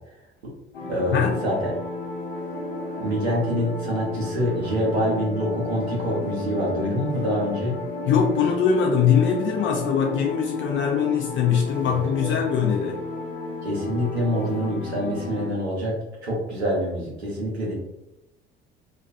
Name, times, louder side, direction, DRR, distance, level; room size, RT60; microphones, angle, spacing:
sound 1, 0.7-15.5, left 2 dB, 80° left, 0.8 m, -33 dB
voice 1, 0.9-1.7 3.0-7.8 11.8-12.3 13.6-17.7, equal, 85° right, -4 dB, 0.8 m, -26 dB
voice 2, 8.1-13.0, left 7 dB, 40° left, 1 dB, 0.5 m, -22 dB
2.3 x 2.3 x 2.4 m, 0.91 s
figure-of-eight pair, 55°, 31 cm